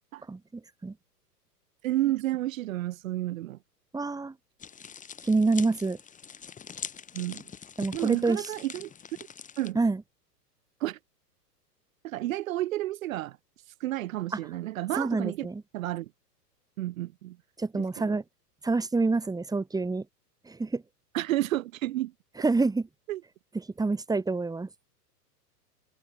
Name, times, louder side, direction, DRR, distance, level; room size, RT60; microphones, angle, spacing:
voice 1, 0.3-0.9 3.9-4.3 5.2-6.0 7.8-8.5 9.7-10.0 15.0-15.6 17.6-18.2 18.6-20.0 20.5-20.8 22.4-22.9 23.8-24.7, right 3 dB, 5° right, 4.2 m, -27 dB
voice 2, 1.8-3.6 7.1-7.4 7.9-8.9 9.6-9.8 10.8-11.0 12.0-13.4 13.8-15.5 15.7-16.1 16.8-17.4 17.7-18.2 21.1-22.1 23.1-23.2, right 15 dB, 50° right, 2.9 m, -31 dB
sound 1, 4.6-9.7, left 7 dB, 15° left, 3.3 m, -43 dB
figure-of-eight pair, 105°, 49 cm